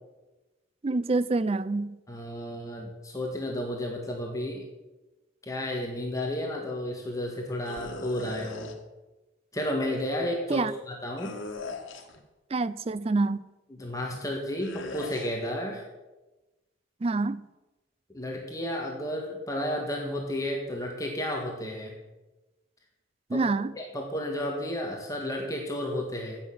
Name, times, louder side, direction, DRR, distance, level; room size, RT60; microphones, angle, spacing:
voice 1, 0.8-2.0 10.5-10.7 12.5-13.4 17.0-17.4 23.3-23.7, right 3 dB, 30° right, 17 dB, 0.4 m, -26 dB
voice 2, 2.1-4.6 5.4-8.7 9.5-11.4 13.7-15.8 18.1-22.0 23.3-23.4 23.8-26.4, left 1 dB, 15° left, 0 dB, 1.7 m, -32 dB
sound 1, 7.6-8.7 11.2-12.2 14.6-15.3, left 3 dB, 90° left, 1.5 m, -39 dB
15.5 x 6.6 x 7.3 m, 1.1 s
head